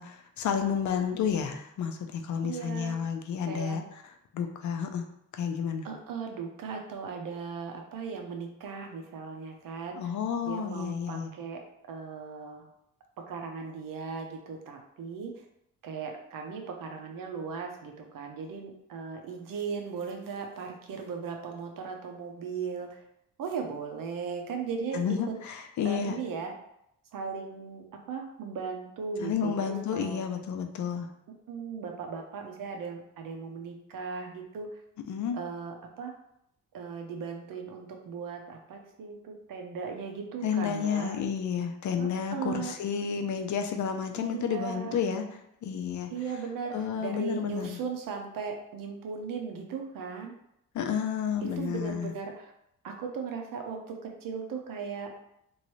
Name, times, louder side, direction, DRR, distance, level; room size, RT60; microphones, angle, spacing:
voice 1, 0.0-3.8 4.3-5.1 5.4-5.9 10.0-11.3 24.9-26.2 29.2-31.1 35.1-35.4 40.4-45.2 45.6-46.1 46.7-47.8 50.7-52.1, left 7 dB, 55° left, 5 dB, 0.4 m, -31 dB
voice 2, 2.4-3.0 3.4-3.8 5.8-10.1 10.4-11.6 11.9-12.7 13.2-15.3 15.8-23.0 23.4-25.0 25.8-26.5 27.1-30.2 31.5-34.7 35.3-36.1 36.7-41.2 42.0-42.7 44.2-45.0 46.1-50.3 51.4-52.5 52.8-55.1, right 5 dB, 70° right, 3 dB, 0.7 m, -37 dB
3.1 x 2.6 x 3.0 m, 0.77 s
cardioid pair, 145°, 35 cm